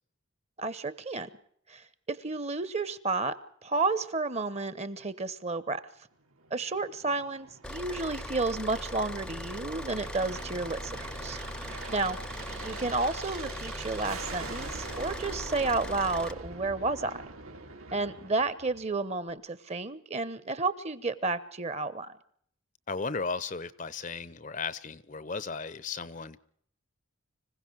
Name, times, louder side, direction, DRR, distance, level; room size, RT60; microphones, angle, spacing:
voice 1, 0.6-1.3 1.7-3.4 3.6-5.8 6.5-11.4 11.9-12.2 12.6-17.2 17.9-22.1, right 3 dB, 30° right, 15 dB, 1.1 m, -31 dB
Aircraft, 6.3-19.0, right 3 dB, 80° right, 3.6 m, -44 dB
Car / Idling, 7.6-16.3, left 1 dB, 5° left, 0.7 m, -40 dB
voice 2, 22.9-26.4, left 4 dB, 35° left, 17 dB, 0.7 m, -35 dB
26.0 x 16.0 x 6.3 m, 0.64 s
head